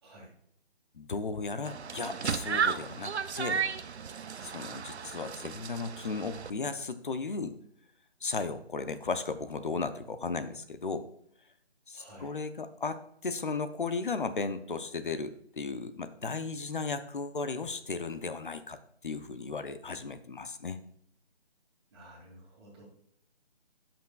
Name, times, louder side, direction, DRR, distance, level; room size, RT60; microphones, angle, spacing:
voice 1, 0.0-0.3 9.6-10.5 11.9-12.4 21.9-22.8, equal, 25° right, -3 dB, 2.4 m, -53 dB
voice 2, 0.9-3.6 4.4-7.6 8.2-11.1 11.9-18.8 19.0-20.8, left 4 dB, 50° left, 11 dB, 0.6 m, -35 dB
sound 1, 1.6-6.5, right 6 dB, 85° right, 0.6 m, -34 dB
13.0 x 6.0 x 2.3 m, 0.70 s
figure-of-eight pair, 165°, 32 cm